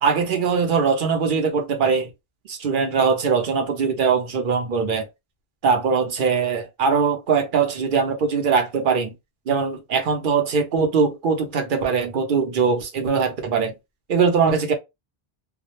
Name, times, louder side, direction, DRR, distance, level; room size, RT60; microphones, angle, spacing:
voice 1, 0.0-2.1 2.5-5.1 5.6-9.1 9.5-13.7 14.1-14.7, right 5 dB, 55° right, 0.8 m, -21 dB
2.3 x 2.0 x 2.9 m
omnidirectional pair, 1.0 m